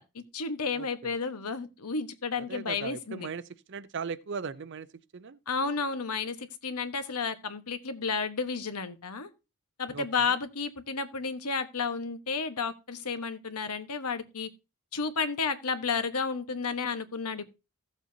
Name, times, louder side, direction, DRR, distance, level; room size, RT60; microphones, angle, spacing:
voice 1, 0.0-3.3 5.5-9.3 9.8-14.5 14.9-17.5, left 5 dB, 90° left, 1.2 m, -32 dB
voice 2, 2.5-3.4 3.7-4.9 5.1-5.4 9.9-10.0, right 5 dB, 50° right, 0.5 m, -37 dB
16.0 x 7.2 x 2.7 m
head